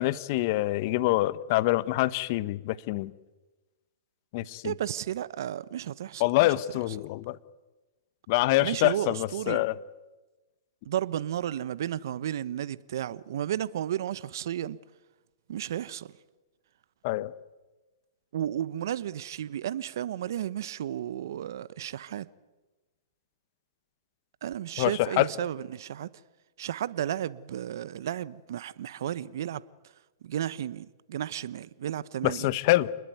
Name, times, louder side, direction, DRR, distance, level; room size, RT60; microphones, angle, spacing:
voice 1, 0.0-3.1 4.3-4.7 6.2-7.4 8.3-9.7 17.0-17.3 24.8-25.3 32.2-32.9, left 18 dB, 45° left, 1.3 m, -25 dB
voice 2, 4.6-6.2 8.6-9.6 10.8-14.8 15.5-16.1 18.3-22.3 24.4-26.1 26.6-29.6 30.2-32.5, right 11 dB, 65° right, 1.1 m, -33 dB
29.0 x 21.0 x 9.5 m
hypercardioid pair, 125°, 2 cm